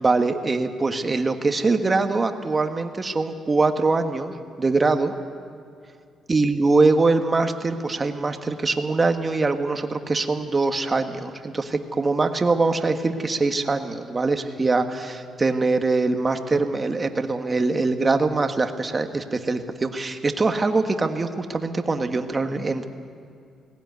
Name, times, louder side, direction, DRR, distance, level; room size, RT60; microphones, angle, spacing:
voice 1, 0.0-5.1 6.3-22.9, right 3 dB, 30° right, 6 dB, 1.6 m, -23 dB
19.0 x 16.5 x 9.6 m, 2.4 s
cardioid pair, 90°, 0 cm